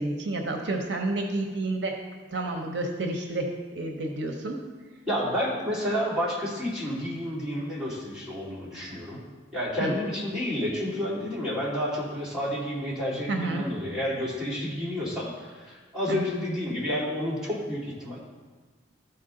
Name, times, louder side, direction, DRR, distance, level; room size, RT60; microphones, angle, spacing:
voice 1, 0.0-1.9 2.3-3.5 3.7-4.6 9.8-9.9 13.3-13.6 16.1-16.4, right 2 dB, 65° right, 3 dB, 0.8 m, -30 dB
voice 2, 5.1-9.2 9.5-18.2, equal, 5° right, -9 dB, 2.3 m, -30 dB
13.0 x 4.4 x 3.8 m, 1.4 s
head